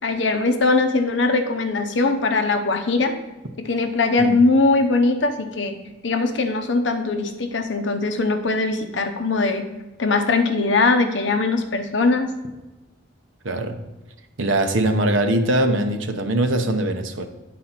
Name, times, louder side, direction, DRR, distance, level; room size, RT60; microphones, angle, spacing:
voice 1, 0.0-3.1 3.6-5.7 6.0-9.6 10.0-12.3, left 3 dB, 70° left, 7 dB, 0.7 m, -20 dB
voice 2, 13.4-13.8 14.4-17.3, right 1 dB, 80° right, 6 dB, 0.8 m, -21 dB
9.7 x 4.2 x 5.7 m, 1.1 s
head